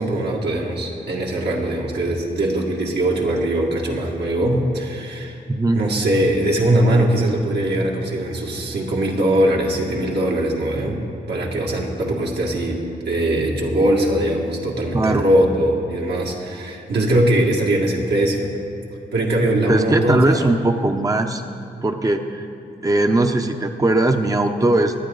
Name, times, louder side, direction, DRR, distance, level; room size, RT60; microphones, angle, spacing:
voice 1, 0.0-5.4 5.7-11.0 11.3-18.5 19.1-20.5, right 1 dB, 75° right, -2 dB, 2.1 m, -21 dB
voice 2, 5.5-5.8 14.9-15.2 19.7-21.4 21.8-22.5 22.8-24.9, right 2 dB, 20° right, 6 dB, 0.7 m, -19 dB
22.0 x 9.2 x 4.0 m, 2.7 s
cardioid pair, 60°, 18 cm